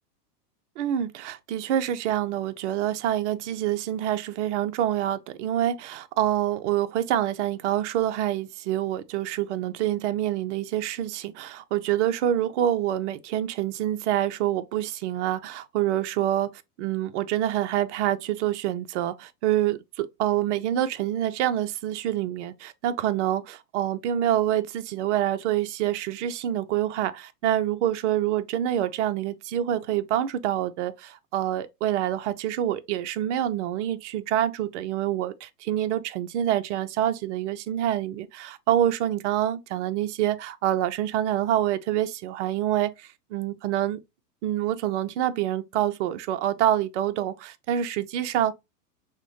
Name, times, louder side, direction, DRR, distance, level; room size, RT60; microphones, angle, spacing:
voice 1, 0.8-16.5 16.8-44.0 44.4-48.5, right 12 dB, 50° right, 0.5 m, -26 dB
5.8 x 2.1 x 2.8 m
hypercardioid pair, 120°, 48 cm